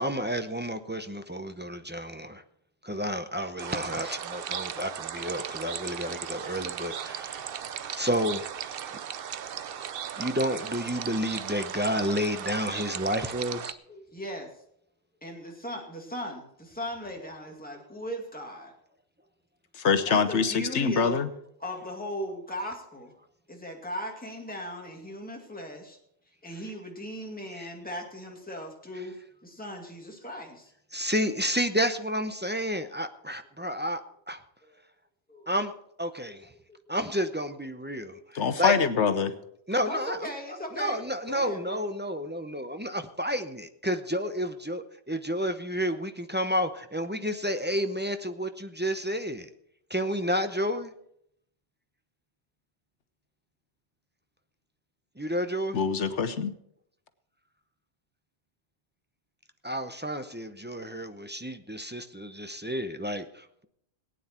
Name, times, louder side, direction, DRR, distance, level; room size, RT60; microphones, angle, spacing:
voice 1, 0.0-2.4 2.8-7.4 7.9-8.4 10.2-13.8 27.6-27.7 30.9-34.0 34.3-34.4 35.5-35.7 36.0-36.5 36.9-38.8 39.7-40.3 40.7-49.5 49.9-50.9 55.2-55.8 59.6-63.7, equal, 10° right, 8 dB, 0.6 m, -30 dB
sound 1, 3.6-13.7, right 9 dB, 60° right, 0.8 m, -37 dB
voice 2, 13.9-14.5 15.2-18.7 20.0-21.2 21.6-23.1 23.5-26.0 26.4-29.2 29.4-30.7 34.6-34.8 35.3-35.5 38.1-38.2 39.8-41.8, equal, 10° left, 0 dB, 2.2 m, -38 dB
voice 3, 19.8-21.3 38.3-39.3 55.7-56.5, left 6 dB, 90° left, 11 dB, 1.3 m, -24 dB
18.0 x 9.4 x 4.4 m, 0.72 s
omnidirectional pair, 1.2 m